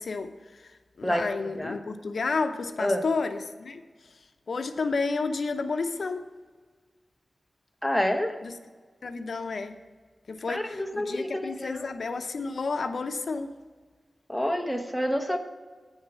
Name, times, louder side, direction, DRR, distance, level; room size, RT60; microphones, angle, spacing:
voice 1, 0.0-6.3 8.4-8.5 9.0-9.8 10.3-13.6, left 4 dB, 75° left, 8 dB, 0.6 m, -31 dB
voice 2, 7.8-8.4 10.5-11.8 14.3-15.4, left 1 dB, 5° left, 4 dB, 0.9 m, -28 dB
9.2 x 6.5 x 7.0 m, 1.4 s
wide cardioid pair, 100°, 0 cm